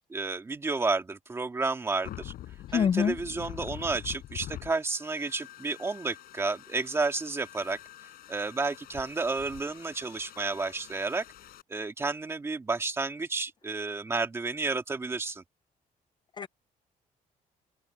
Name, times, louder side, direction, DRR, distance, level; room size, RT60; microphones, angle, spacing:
voice 1, 0.1-2.3 2.7-7.8 8.3-11.2 11.7-15.4, right 3 dB, 15° right, 2.2 m, -31 dB
sound 1, 2.0-11.6, left 13 dB, 80° left, 4.7 m, -45 dB
voice 2, 2.7-3.2 16.4-16.5, left 7 dB, 30° left, 0.4 m, -25 dB
cardioid pair, 170°, 15 cm